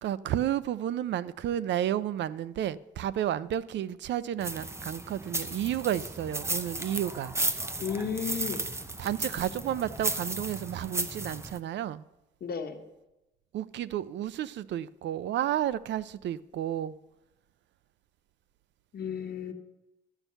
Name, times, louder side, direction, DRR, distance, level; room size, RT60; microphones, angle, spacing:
voice 1, 0.0-7.4 9.0-12.0 13.5-17.0, right 11 dB, 65° right, 0.4 m, -31 dB
sound 1, 4.4-11.6, right 2 dB, 15° right, 0.6 m, -34 dB
voice 2, 7.8-8.6 12.4-12.8 18.9-19.5, left 7 dB, 50° left, 1.3 m, -33 dB
13.0 x 4.5 x 6.7 m
cardioid pair, 90°, 20 cm